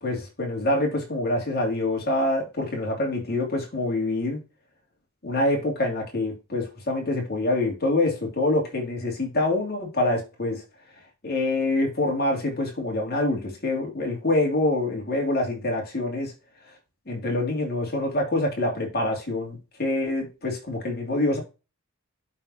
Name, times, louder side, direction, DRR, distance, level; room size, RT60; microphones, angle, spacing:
voice 1, 0.0-4.4 5.2-10.6 11.2-16.3 17.1-21.4, left 2 dB, 45° left, 2.9 m, -26 dB
11.5 x 4.3 x 2.8 m
head